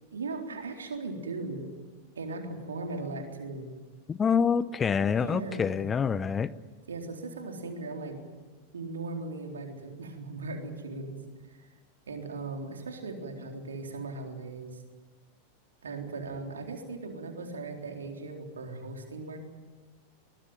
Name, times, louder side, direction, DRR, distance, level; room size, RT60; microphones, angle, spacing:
voice 1, 0.1-1.7 2.2-3.7 5.1-5.9 6.9-8.2 8.7-11.2 11.5-11.7 12.1-14.8 15.8-19.4, right 3 dB, 70° right, 3 dB, 3.9 m, -38 dB
voice 2, 4.1-6.5, left 6 dB, 20° left, 18 dB, 0.7 m, -26 dB
23.0 x 20.0 x 9.3 m, 1.3 s
figure-of-eight pair, 90°, 0 cm